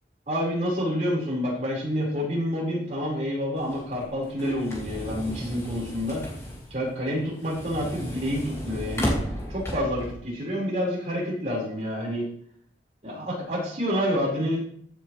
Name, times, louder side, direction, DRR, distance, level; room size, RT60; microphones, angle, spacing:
voice 1, 0.3-6.2 6.7-9.1 9.5-12.3 13.0-14.6, equal, 40° right, -5 dB, 4.9 m, -28 dB
sound 1, 3.5-10.1, equal, 15° left, 2.2 m, -34 dB
15.0 x 7.0 x 3.3 m, 0.62 s
head